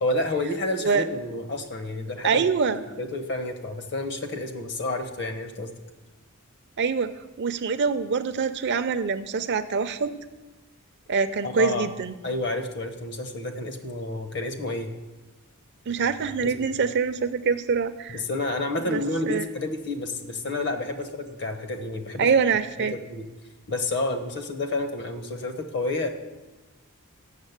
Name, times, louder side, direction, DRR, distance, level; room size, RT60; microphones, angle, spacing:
voice 1, 0.0-2.5 3.0-5.7 11.4-11.9 12.2-14.9 16.4-16.7 18.1-22.3 22.8-23.2 23.7-26.1, left 2 dB, 55° left, 7 dB, 1.0 m, -30 dB
voice 2, 2.2-2.8 6.8-7.1 7.4-10.1 11.1-12.2 15.9-18.2 18.8-19.0 19.3-19.4 22.2-22.9, right 5 dB, 55° right, 11 dB, 0.5 m, -24 dB
7.4 x 6.5 x 8.1 m, 1.1 s
head